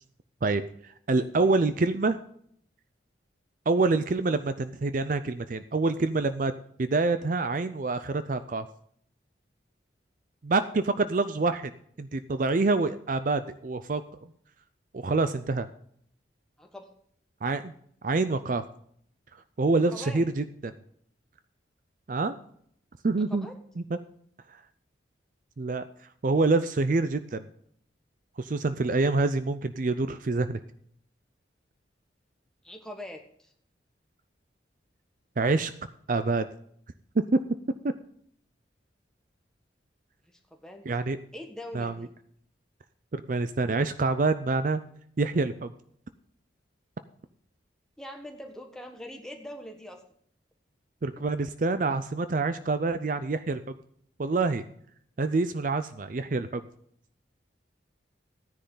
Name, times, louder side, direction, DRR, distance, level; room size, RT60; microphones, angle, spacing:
voice 1, 0.4-2.2 3.7-6.5 6.8-8.7 10.4-11.7 12.0-14.0 14.9-15.7 17.4-17.7 18.0-18.6 19.6-20.7 22.1-22.4 23.0-23.5 23.9-24.0 25.6-25.8 26.2-27.5 28.4-30.6 35.4-35.7 36.1-36.5 37.3-37.4 40.9-41.2 41.7-42.1 43.1-44.8 45.2-45.7 51.0-53.6 54.2-54.6 55.2-56.6, right 3 dB, 45° right, 11 dB, 0.5 m, -26 dB
voice 2, 16.6-16.9 19.9-20.2 23.3-23.5 32.6-33.5 40.6-40.9 41.3-42.1 48.0-50.0, left 1 dB, 5° left, 2 dB, 1.4 m, -42 dB
14.5 x 10.0 x 3.9 m, 0.65 s
head